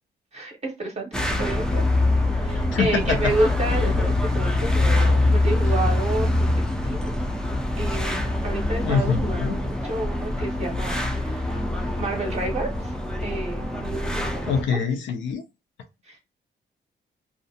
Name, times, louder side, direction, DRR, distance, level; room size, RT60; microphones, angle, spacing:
voice 1, 0.3-1.9 2.3-7.1 7.8-11.6 12.0-12.9 13.2-14.8 16.1-16.2, right 2 dB, 35° right, 0.6 m, -30 dB
sound 1, 1.1-14.6, left 2 dB, 5° left, 0.3 m, -24 dB
voice 2, 2.7-3.3 8.8-9.6 14.5-15.4, left 6 dB, 90° left, 0.5 m, -24 dB
2.4 x 2.0 x 2.7 m
wide cardioid pair, 130°, 19 cm